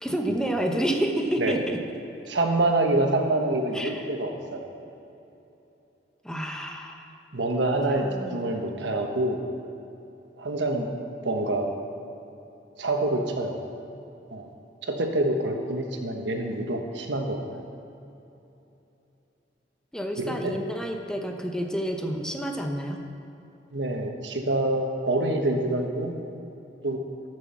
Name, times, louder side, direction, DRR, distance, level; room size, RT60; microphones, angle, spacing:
voice 1, 0.0-1.8 3.7-4.1 6.2-7.1 8.0-8.4 19.9-23.0, right 1 dB, 5° left, 3 dB, 0.8 m, -29 dB
voice 2, 2.3-4.7 7.3-9.4 10.4-10.9 11.2-11.7 12.8-13.5 14.3-14.5 14.8-17.4 20.2-20.6 23.7-26.1 26.8-27.0, right 2 dB, 85° right, 3 dB, 1.3 m, -26 dB
12.5 x 6.2 x 7.2 m, 2.9 s
head